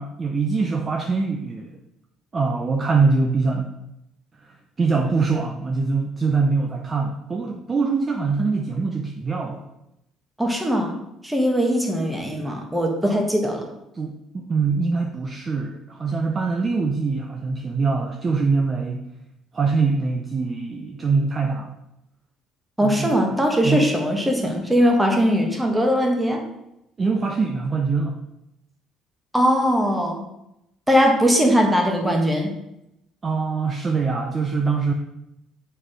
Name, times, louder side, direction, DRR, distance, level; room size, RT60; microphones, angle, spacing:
voice 1, 0.0-1.8 2.3-3.7 4.8-9.6 13.1-13.2 13.9-19.0 19.5-21.7 22.8-23.2 23.6-23.9 27.0-28.2 33.2-34.9, right 4 dB, 20° right, 2 dB, 0.5 m, -23 dB
voice 2, 10.4-10.9 11.2-13.7 22.8-26.4 29.3-30.2 30.9-32.5, equal, 5° right, 1 dB, 1.1 m, -20 dB
7.1 x 4.5 x 4.9 m, 0.86 s
cardioid pair, 165°, 0 cm